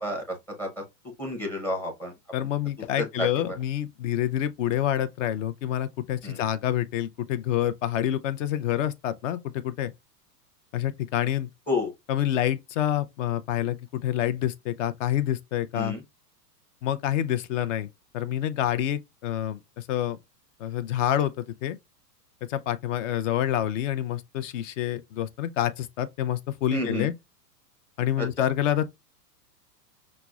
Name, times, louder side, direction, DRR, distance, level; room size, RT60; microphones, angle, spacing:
voice 1, 0.0-0.8 1.2-2.1 3.0-3.5 6.2-6.4 11.7-11.9 15.7-16.0 26.7-27.1 28.2-28.5, left 1 dB, 5° left, 0.5 m, -30 dB
voice 2, 2.3-9.9 10.7-11.5 12.1-15.9 16.8-20.2 20.6-21.8 22.5-27.1 28.0-28.9, left 11 dB, 50° left, 0.5 m, -27 dB
5.8 x 2.1 x 2.3 m
hypercardioid pair, 135°, 49 cm